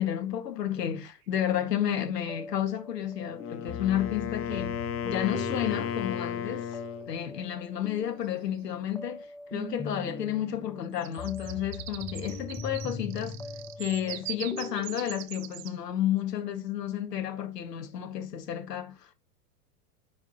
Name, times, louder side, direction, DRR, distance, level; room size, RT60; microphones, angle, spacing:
voice 1, 0.0-4.8 5.0-6.8 7.1-13.4 13.8-19.1, left 10 dB, 90° left, 1.7 m, -31 dB
sound 1, 1.3-1.4 5.6-6.2 7.9-8.0 8.2-8.6 10.8-15.8, right 17 dB, 40° right, 0.6 m, -42 dB
sound 2, 2.3-15.3, left 3 dB, 5° left, 0.4 m, -41 dB
Wind instrument woodwind instrument, 3.3-7.1, left 8 dB, 30° left, 0.8 m, -34 dB
9.6 x 3.6 x 2.8 m
hypercardioid pair, 120°, 47 cm